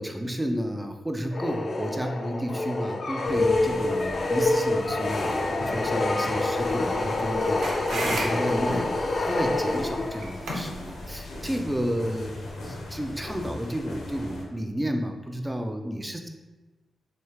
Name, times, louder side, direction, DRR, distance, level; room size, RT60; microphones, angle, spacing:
voice 1, 0.0-7.6 7.9-9.0 9.2-12.3 12.6-16.3, equal, 10° right, 4 dB, 0.5 m, -31 dB
sound 1, 1.3-10.4, left 2 dB, 45° left, 0.4 m, -27 dB
sound 2, 3.2-14.4, left 1 dB, 85° left, 0.9 m, -38 dB
sound 3, 6.6-11.7, right 1 dB, 85° right, 0.8 m, -36 dB
3.3 x 2.8 x 4.6 m, 1.2 s
cardioid pair, 85°, 0 cm